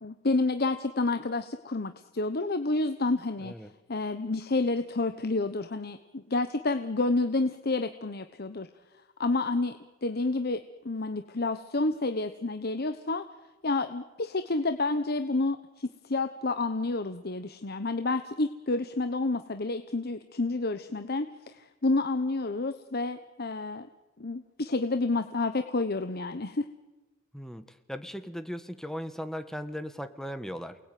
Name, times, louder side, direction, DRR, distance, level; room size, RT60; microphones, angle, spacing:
voice 1, 0.0-3.5 3.9-8.7 9.2-13.3 13.6-23.9 24.2-26.7, left 3 dB, 50° left, 9 dB, 1.0 m, -29 dB
voice 2, 3.4-3.7 27.3-30.8, equal, ahead, 10 dB, 1.4 m, -38 dB
29.0 x 20.0 x 9.4 m, 1.1 s
head